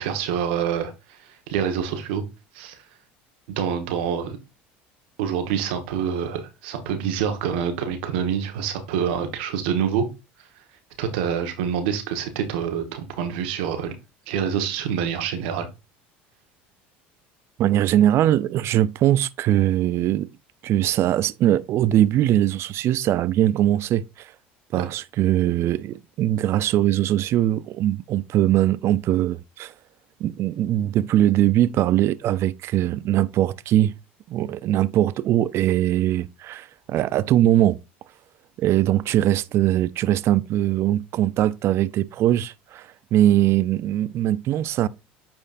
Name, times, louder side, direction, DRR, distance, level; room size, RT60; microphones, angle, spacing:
voice 1, 0.0-2.2 2.5-2.8 3.5-4.4 5.2-10.1 11.0-13.9 14.3-15.7 24.7-24.8, right 8 dB, 80° right, 1.4 m, -26 dB
voice 2, 17.6-20.3 20.6-24.3 24.7-29.7 30.2-33.9 34.3-37.8 38.6-44.9, right 12 dB, 50° right, 0.4 m, -21 dB
8.9 x 4.4 x 2.6 m
supercardioid pair, 90°, 6 cm